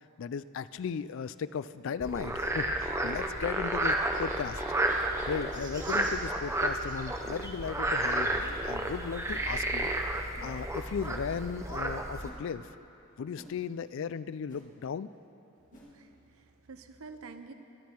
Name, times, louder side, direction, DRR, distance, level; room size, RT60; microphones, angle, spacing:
voice 1, 0.2-4.6 5.2-9.9 10.4-12.7 13.2-15.1, left 6 dB, 60° left, 15 dB, 0.3 m, -36 dB
Cartoon Swishes, 0.7-0.9 1.8-2.0 2.7-2.8 3.7-3.9 4.8-5.0 5.9-6.1 7.3-7.5 8.4-8.6 9.3-9.5 10.3-10.5 11.3-11.5 12.2-12.4 13.3-13.5 14.5-14.6 15.7-15.9, equal, 35° left, 2.1 m, -54 dB
Frog, 2.0-12.3, right 1 dB, 15° right, 0.6 m, -31 dB
Chirp tweet, 3.4-7.0 8.2-8.4 9.1-9.2 9.4-9.5 10.8-10.9, right 3 dB, 35° right, 1.7 m, -51 dB
voice 2, 15.7-17.5, right 4 dB, 75° right, 8 dB, 0.8 m, -49 dB
19.0 x 11.0 x 4.4 m, 2.8 s
head